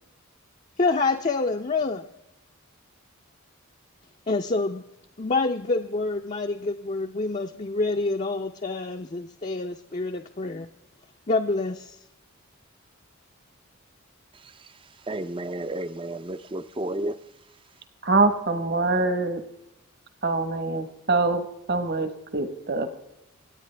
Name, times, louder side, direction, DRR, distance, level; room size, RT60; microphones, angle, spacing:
voice 1, 0.8-2.1 4.3-4.8 5.2-10.7 11.3-12.0, left 3 dB, 30° left, 4 dB, 0.5 m, -27 dB
voice 2, 14.3-17.2, right 1 dB, 25° right, 13 dB, 0.5 m, -33 dB
voice 3, 18.0-19.4 20.2-22.9, right 3 dB, 50° right, 9 dB, 1.2 m, -24 dB
27.0 x 9.1 x 3.3 m, 0.92 s
head